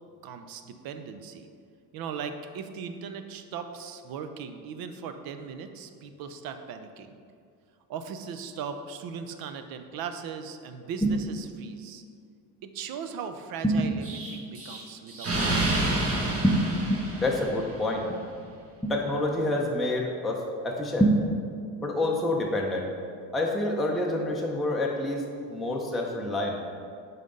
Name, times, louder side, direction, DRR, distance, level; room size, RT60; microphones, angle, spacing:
voice 1, 0.2-1.5 1.9-7.1 7.9-12.0 12.6-15.6, right 6 dB, 60° right, 8 dB, 0.6 m, -38 dB
Explosion, 14.0-17.9, right 2 dB, 35° right, 1.1 m, -29 dB
voice 2, 16.9-18.1 18.8-21.2 21.8-22.9 23.3-26.6, left 1 dB, ahead, -2 dB, 0.6 m, -27 dB
5.7 x 3.9 x 5.3 m, 2.3 s
cardioid pair, 110°, 41 cm